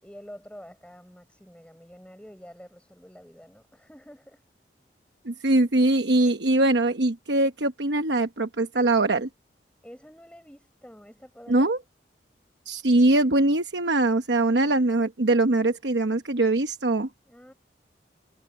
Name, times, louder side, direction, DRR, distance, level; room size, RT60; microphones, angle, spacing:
voice 1, 0.0-4.4 9.8-11.8 17.3-17.5, equal, 5° left, 6.6 m, -47 dB
voice 2, 5.2-9.3 11.5-11.8 12.7-17.1, right 2 dB, 75° right, 1.0 m, -22 dB
head